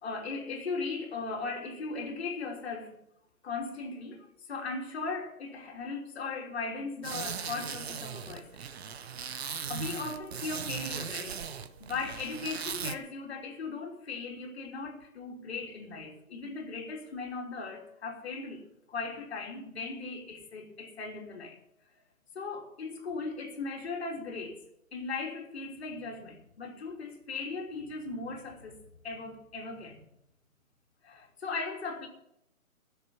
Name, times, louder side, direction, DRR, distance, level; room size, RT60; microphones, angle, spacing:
voice 1, 0.0-3.0 3.4-8.6 9.7-11.4 11.8-18.6 18.9-21.6 22.3-24.6 24.9-30.0 31.0-32.1, left 4 dB, 50° left, 3.1 m, -38 dB
sound 1, 7.0-13.0, right 7 dB, 50° right, 1.0 m, -38 dB
15.5 x 6.8 x 8.7 m
hypercardioid pair, 150°, 42 cm